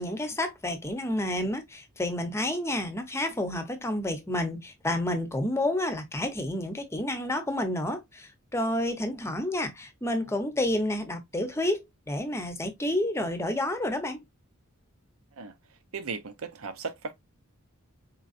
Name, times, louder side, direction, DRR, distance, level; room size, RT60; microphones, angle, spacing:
voice 1, 0.0-14.2, left 1 dB, 10° left, 0.7 m, -30 dB
voice 2, 15.9-17.1, right 4 dB, 80° right, 0.8 m, -36 dB
4.5 x 3.8 x 2.5 m
head